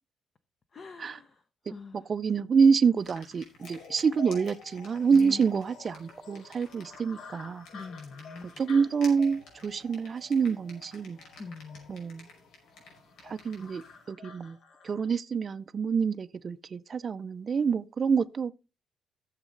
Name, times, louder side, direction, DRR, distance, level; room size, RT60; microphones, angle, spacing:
voice 1, 0.7-1.4 1.7-2.1 5.1-5.4 7.7-8.5 11.4-11.9, left 4 dB, 35° left, 0.7 m, -43 dB
voice 2, 1.9-7.7 8.6-11.2 11.9-12.3 13.2-14.6 14.8-18.5, right 5 dB, 35° right, 0.5 m, -27 dB
sound 1, 3.0-14.0, left 2 dB, 85° left, 5.3 m, -54 dB
sound 2, 3.6-15.1, left 4 dB, 60° left, 1.7 m, -50 dB
14.5 x 7.4 x 3.9 m
cardioid pair, 160°, 0 cm